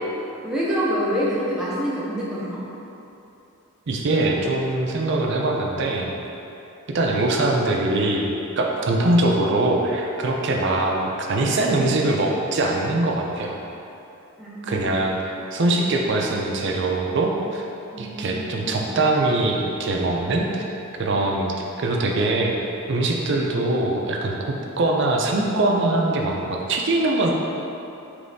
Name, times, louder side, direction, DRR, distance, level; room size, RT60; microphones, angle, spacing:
voice 1, 0.4-2.7 14.4-14.9 17.9-18.9, equal, 5° right, -8 dB, 0.5 m, -27 dB
voice 2, 3.9-6.1 6.9-8.3 8.6-13.6 14.7-17.6 18.0-20.6 21.0-22.5 22.9-27.3, right 2 dB, 50° right, 0 dB, 0.4 m, -22 dB
5.1 x 3.2 x 2.6 m, 2.8 s
head